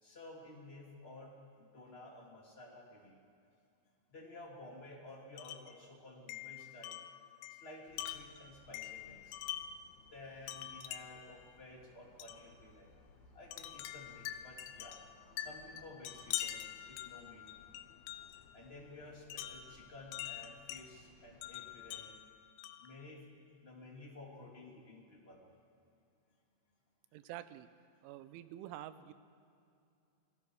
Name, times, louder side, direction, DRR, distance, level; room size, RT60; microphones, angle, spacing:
voice 1, 0.0-3.2 4.1-7.0 7.5-9.4 10.1-13.0 13.3-15.0 15.4-17.5 18.5-22.2 22.8-23.3 23.6-25.4, left 2 dB, 15° left, -2 dB, 2.2 m, -53 dB
Wind chime, 5.4-5.8 6.3-9.9 10.5-11.3 12.2-12.5 13.5-18.4 19.3-20.9 21.4-22.9, left 12 dB, 85° left, 3.2 m, -45 dB
sound 1, 7.9-22.0, left 3 dB, 50° left, 2.3 m, -64 dB
voice 2, 27.1-27.7 28.0-29.1, right 13 dB, 90° right, 13 dB, 3.2 m, -47 dB
28.5 x 19.5 x 4.8 m, 2.5 s
omnidirectional pair, 5.4 m